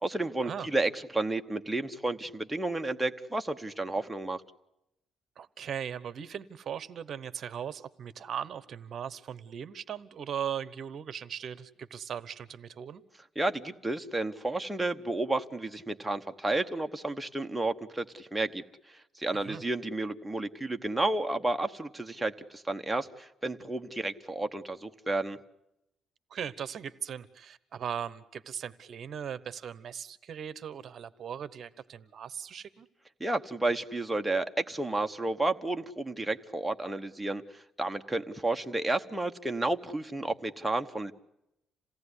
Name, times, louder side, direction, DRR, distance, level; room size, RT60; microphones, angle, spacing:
voice 1, 0.0-4.4 13.4-25.4 33.2-41.1, right 2 dB, 5° right, 5 dB, 1.0 m, -31 dB
voice 2, 5.4-13.0 19.5-19.6 26.3-32.9, right 8 dB, 50° right, 16 dB, 1.0 m, -38 dB
28.0 x 17.5 x 9.8 m, 0.85 s
cardioid pair, 140°, 0 cm